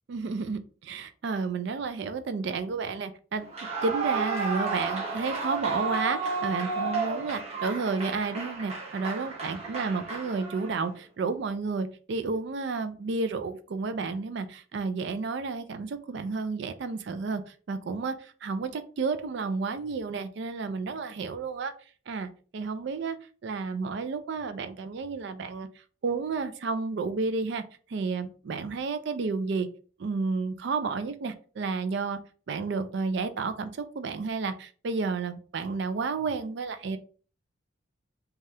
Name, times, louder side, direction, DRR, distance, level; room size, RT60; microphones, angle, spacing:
voice 1, 0.1-3.5 3.8-21.7 22.1-23.2 23.4-25.7 26.0-27.6 27.9-29.7 30.0-32.2 32.5-37.0, right 4 dB, 55° right, 10 dB, 0.3 m, -31 dB
Clapping / Cheering / Applause, 3.4-10.9, right 4 dB, 30° right, 0.8 m, -32 dB
3.3 x 2.3 x 2.7 m, 0.39 s
head